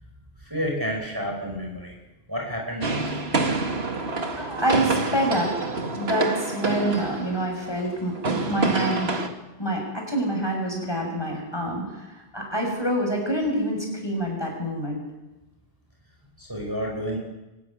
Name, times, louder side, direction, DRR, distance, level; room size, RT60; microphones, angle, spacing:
voice 1, 0.4-1.9 2.3-3.2 16.4-17.2, equal, 20° right, -1 dB, 4.9 m, -30 dB
sound 1, 2.8-9.3, right 3 dB, 60° right, 2.1 m, -27 dB
voice 2, 4.4-5.5 6.0-9.2 9.6-15.0, right 1 dB, 20° left, 0 dB, 6.8 m, -26 dB
24.5 x 13.5 x 9.8 m, 1.0 s
omnidirectional pair, 1.2 m